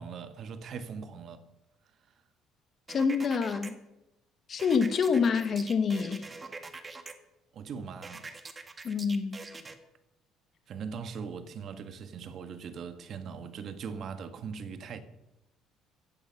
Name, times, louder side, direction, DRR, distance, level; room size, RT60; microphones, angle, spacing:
voice 1, 0.0-1.4 7.5-8.2 10.7-15.0, right 6 dB, 50° right, 1.5 m, -40 dB
voice 2, 2.9-3.8 4.5-6.2 8.8-9.4, left 5 dB, 40° left, 1.5 m, -27 dB
sound 1, 2.9-3.7 4.6-7.1 8.0-9.7, right 3 dB, 20° right, 1.7 m, -44 dB
16.0 x 14.5 x 5.9 m
cardioid pair, 125°, 0 cm